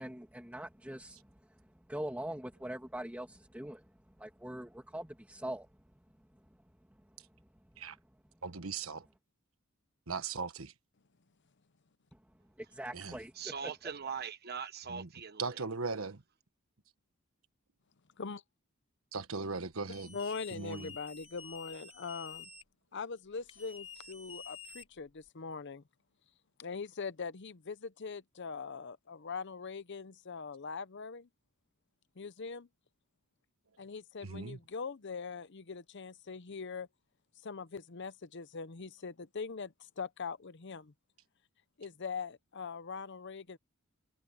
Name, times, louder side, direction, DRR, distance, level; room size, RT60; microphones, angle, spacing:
voice 1, 0.0-3.9 4.2-5.7 7.7-7.8 12.1-12.2 12.6-13.7, right 1 dB, 5° right, 2.3 m, -43 dB
voice 2, 8.4-9.1 10.1-10.7 12.9-13.2 14.9-15.1 15.4-16.2 19.1-20.2 20.5-20.9 34.2-34.6, right 4 dB, 75° right, 1.4 m, -38 dB
voice 3, 13.4-15.6, right 6 dB, 50° right, 1.4 m, -41 dB
sound 1, 19.9-22.6 23.5-25.3, left 6 dB, 30° left, 4.9 m, -49 dB
voice 4, 20.1-22.5 22.9-25.8 26.6-31.3 32.2-32.7 33.8-36.9 37.4-40.9 41.8-43.6, left 5 dB, 55° left, 0.7 m, -42 dB
head